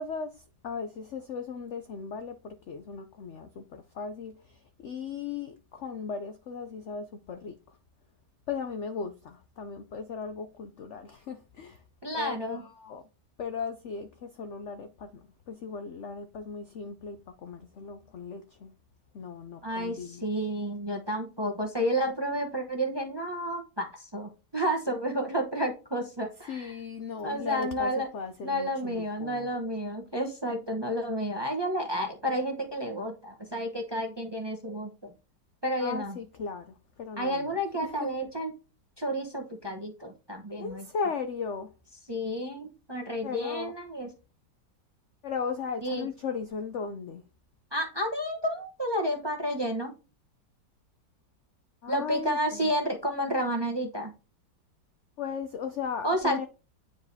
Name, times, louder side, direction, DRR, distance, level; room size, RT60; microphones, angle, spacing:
voice 1, 0.0-7.8 8.5-11.8 12.1-13.1 13.4-18.7 19.1-20.3 26.5-29.5 35.8-38.1 40.6-41.7 43.2-43.7 45.2-47.2 51.8-52.7 55.2-56.5, left 5 dB, 70° left, 0.7 m, -37 dB
voice 2, 12.0-12.6 19.6-26.7 27.2-28.1 28.4-35.1 35.6-36.2 37.2-38.5 39.0-40.8 42.1-44.1 45.8-46.1 47.7-49.9 51.9-54.1 56.0-56.5, equal, 20° right, 0.7 m, -31 dB
9.5 x 4.8 x 2.7 m
omnidirectional pair, 1.9 m